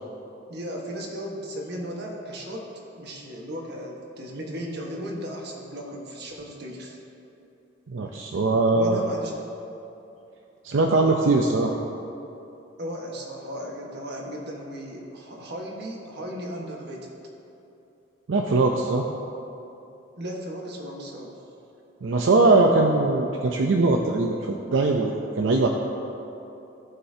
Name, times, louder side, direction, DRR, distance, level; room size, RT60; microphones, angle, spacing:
voice 1, 0.5-7.0 8.7-9.3 12.8-17.1 20.2-21.4, equal, 60° right, -1 dB, 1.3 m, -36 dB
voice 2, 7.9-9.0 10.6-11.8 18.3-19.0 22.0-25.7, right 3 dB, 85° right, 2 dB, 0.5 m, -21 dB
16.5 x 5.6 x 2.8 m, 2.9 s
head